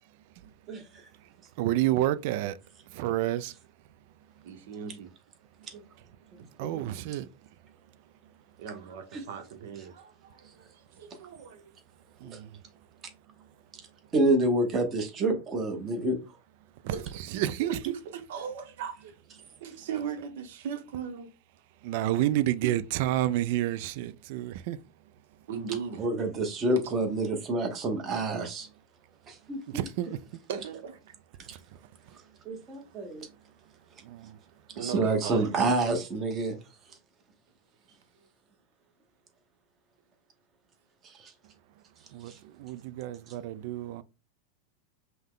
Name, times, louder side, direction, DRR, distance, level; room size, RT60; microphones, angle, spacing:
voice 1, 1.6-2.6 2.9-3.5 6.3-7.3 12.2-12.6 13.4-13.5 16.8-17.9 21.8-24.8 29.7-30.2 31.5-31.6 34.0-34.4 42.1-44.0, right 14 dB, 55° right, 0.3 m, -30 dB
voice 2, 4.4-5.1 6.4-6.5 8.6-11.8 16.8-19.1 19.6-21.3 22.0-22.3 25.5-26.0 30.5-31.1 32.9-33.0 34.7-35.7, right 7 dB, 70° right, 0.9 m, -38 dB
voice 3, 14.1-16.2 26.0-28.7 29.3-29.9 31.5-31.6 32.4-33.3 34.8-36.6 41.0-41.3 42.3-42.4, right 2 dB, 25° right, 0.9 m, -28 dB
5.4 x 2.1 x 3.7 m
supercardioid pair, 160°, 0 cm